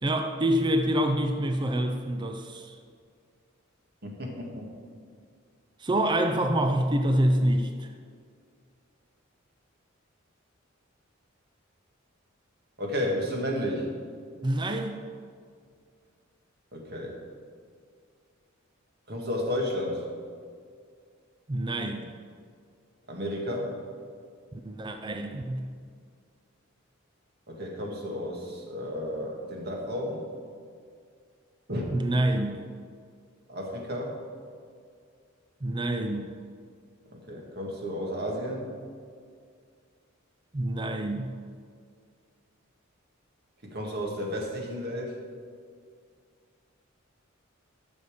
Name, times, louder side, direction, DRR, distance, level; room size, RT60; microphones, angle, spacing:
voice 1, 0.0-2.8 5.8-7.9 14.4-15.0 21.5-22.2 24.6-25.7 31.9-32.6 35.6-36.3 40.5-41.4, right 1 dB, 20° right, 6 dB, 0.5 m, -26 dB
voice 2, 4.0-4.7 12.8-13.9 16.7-17.2 19.1-20.0 23.1-23.7 27.5-30.3 31.7-31.9 33.5-34.2 37.1-38.7 43.6-45.2, equal, 50° right, -1 dB, 1.9 m, -32 dB
12.5 x 6.9 x 5.1 m, 2.1 s
head